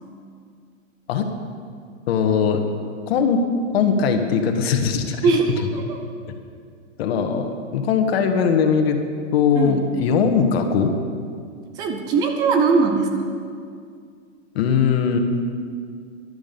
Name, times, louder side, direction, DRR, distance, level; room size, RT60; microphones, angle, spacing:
voice 1, 2.1-2.7 3.1-3.4 3.7-5.3 7.0-9.0 9.3-10.9 14.5-15.2, left 6 dB, 50° left, 5 dB, 1.7 m, -20 dB
voice 2, 5.2-6.0 9.6-9.8 11.8-13.2, right 4 dB, 10° right, 5 dB, 0.4 m, -20 dB
12.5 x 11.5 x 7.0 m, 2.2 s
hypercardioid pair, 150°, 38 cm